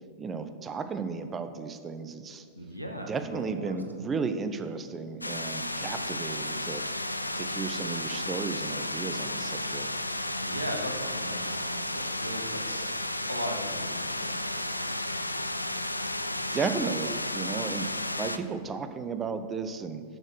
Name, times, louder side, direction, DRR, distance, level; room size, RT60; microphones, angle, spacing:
voice 1, 0.2-2.4 3.1-6.9 7.4-9.9 16.5-17.9 18.2-20.0, right 5 dB, 20° right, 9 dB, 0.5 m, -34 dB
voice 2, 2.5-3.1 3.5-3.8 10.4-12.9 13.3-14.5, equal, 90° right, 3 dB, 0.9 m, -37 dB
sound 1, 5.2-18.4, left 1 dB, 85° left, 0.3 m, -33 dB
6.4 x 6.3 x 6.1 m, 2.1 s
figure-of-eight pair, 90°, 0 cm